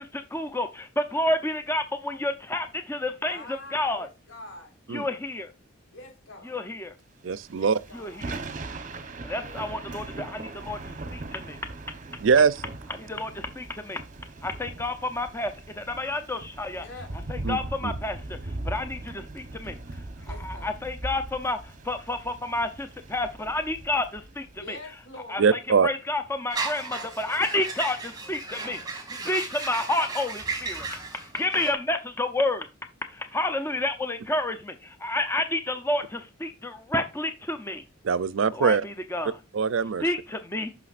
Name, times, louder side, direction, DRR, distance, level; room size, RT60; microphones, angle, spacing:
voice 1, 0.0-4.1 4.9-5.5 6.5-6.9 7.9-8.3 9.2-11.6 13.0-14.0 14.4-16.8 17.3-19.8 20.4-24.8 25.3-30.9 31.1-32.7 33.1-37.8 38.5-39.4 40.0-40.7, left 2 dB, 10° left, 0.6 m, -30 dB
voice 2, 3.2-4.7 5.9-6.6 7.5-8.3 9.3-9.7 16.7-17.1 20.2-20.8 24.5-25.6, left 2 dB, 70° left, 4.0 m, -45 dB
voice 3, 7.2-7.8 12.2-12.6 17.4-17.9 25.4-25.9 38.0-38.8 39.5-40.0, right 5 dB, 65° right, 0.4 m, -22 dB
Thunder / Rain, 7.3-24.8, right 2 dB, 40° right, 1.0 m, -39 dB
sound 1, 26.5-31.7, right 4 dB, 20° right, 2.1 m, -35 dB
9.9 x 6.1 x 2.5 m
head